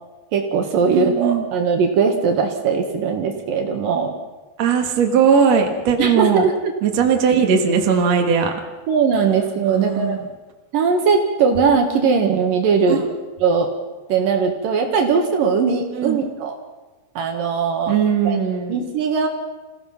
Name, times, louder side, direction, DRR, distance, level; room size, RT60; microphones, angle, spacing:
voice 1, 0.3-4.2 6.0-6.7 8.9-10.2 10.7-13.0 13.4-13.7 14.1-16.6 17.2-17.9 18.2-18.4 18.7-19.3, right 5 dB, 70° right, 3 dB, 3.2 m, -19 dB
voice 2, 0.9-1.5 4.6-6.5 6.8-8.5 9.7-10.2 12.9-13.0 15.9-16.2 17.9-18.8, right 6 dB, 50° right, 2 dB, 2.7 m, -18 dB
27.5 x 16.5 x 5.9 m, 1.2 s
omnidirectional pair, 4.3 m